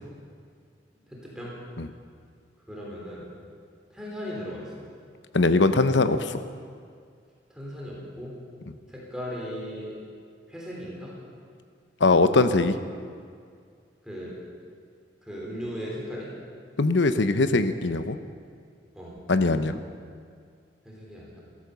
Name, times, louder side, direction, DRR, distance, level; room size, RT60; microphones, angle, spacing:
voice 1, 1.1-1.5 2.7-3.3 3.9-4.8 7.5-8.4 8.9-10.0 10.5-11.1 14.0-14.4 15.2-16.3 18.9-19.2 20.8-21.4, equal, 5° right, -5 dB, 3.5 m, -37 dB
voice 2, 5.3-6.4 12.0-12.8 16.8-18.2 19.3-19.8, left 3 dB, 80° left, 11 dB, 0.8 m, -21 dB
14.5 x 13.5 x 6.9 m, 2.2 s
head